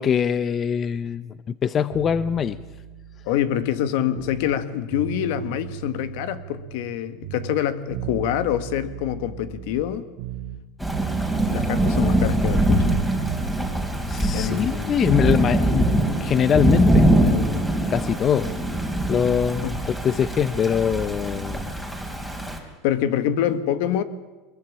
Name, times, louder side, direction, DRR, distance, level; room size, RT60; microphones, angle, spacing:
voice 1, 0.0-2.6 14.1-18.5 19.1-21.7, left 8 dB, 30° left, 0.7 m, -23 dB
sound 1, 1.9-4.6 4.9-7.0 7.2-10.6 10.9-13.5, right 10 dB, 60° right, 2.4 m, -36 dB
voice 2, 3.3-10.1 11.5-13.0 14.3-15.0 19.6-19.8 22.8-24.0, left 10 dB, 75° left, 1.8 m, -25 dB
Thunder / Rain, 10.8-22.6, right 1 dB, 5° left, 3.5 m, -23 dB
23.0 x 21.5 x 8.8 m
supercardioid pair, 145°, 0 cm